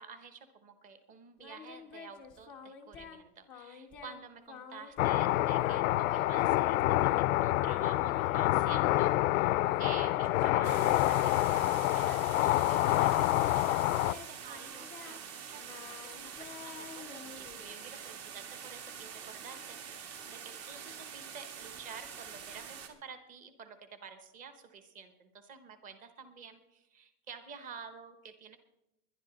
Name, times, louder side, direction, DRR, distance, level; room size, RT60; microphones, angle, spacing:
voice 1, 0.0-11.4 11.6-28.6, right 6 dB, 20° right, 9 dB, 1.0 m, -50 dB
Singing, 1.4-3.2 3.5-4.2 4.5-7.2 7.5-9.0 9.6-13.2 13.5-17.9, left 6 dB, 5° left, 0.4 m, -50 dB
sound 1, 5.0-14.1, left 16 dB, 65° left, 0.5 m, -27 dB
sound 2, 10.6-22.9, right 7 dB, 45° right, 1.9 m, -46 dB
21.0 x 11.0 x 3.9 m, 0.86 s
supercardioid pair, 180°, 44 cm